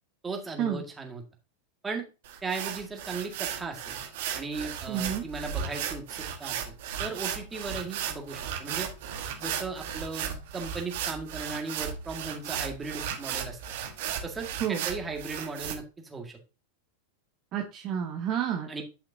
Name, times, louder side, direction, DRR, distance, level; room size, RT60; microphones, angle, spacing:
voice 1, 0.2-1.2 1.8-2.1 2.4-3.8 4.3-6.7 7.0-8.9 9.4-13.6 14.2-16.4 18.7-18.8, right 4 dB, 15° right, 3 dB, 1.9 m, -37 dB
sound 1, 2.2-15.7, right 8 dB, 55° right, 1.4 m, -35 dB
voice 2, 4.9-5.2 14.6-14.9 17.5-18.8, right 9 dB, 35° right, 3 dB, 1.1 m, -30 dB
11.0 x 5.7 x 2.8 m, 0.30 s
figure-of-eight pair, 90°, 0 cm